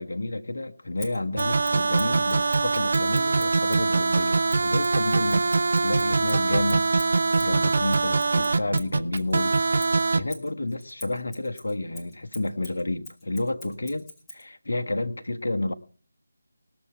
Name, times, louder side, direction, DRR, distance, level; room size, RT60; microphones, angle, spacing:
voice 1, 0.0-5.5 5.8-6.8 7.4-9.6 10.1-15.7, left 2 dB, 55° left, 1.3 m, -30 dB
Scissors, 1.0-3.9 4.5-9.4 9.8-14.5, left 1 dB, 5° left, 1.8 m, -45 dB
sound 1, 1.4-10.2, right 3 dB, 50° right, 0.8 m, -23 dB
20.5 x 7.1 x 4.7 m
figure-of-eight pair, 155°, 0 cm